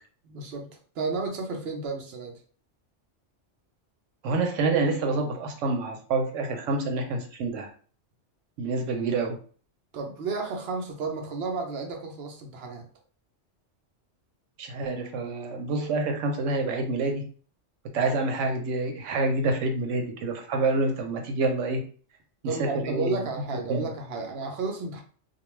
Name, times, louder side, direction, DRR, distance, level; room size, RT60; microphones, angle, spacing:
voice 1, 0.2-2.4 9.9-12.9 22.4-25.0, right 4 dB, 65° right, 3 dB, 0.8 m, -32 dB
voice 2, 4.2-7.7 8.6-9.4 14.6-17.2 17.9-21.8 22.4-23.2 23.5-23.8, right 3 dB, 85° right, 4 dB, 1.0 m, -27 dB
2.3 x 2.3 x 3.1 m, 0.43 s
omnidirectional pair, 1.2 m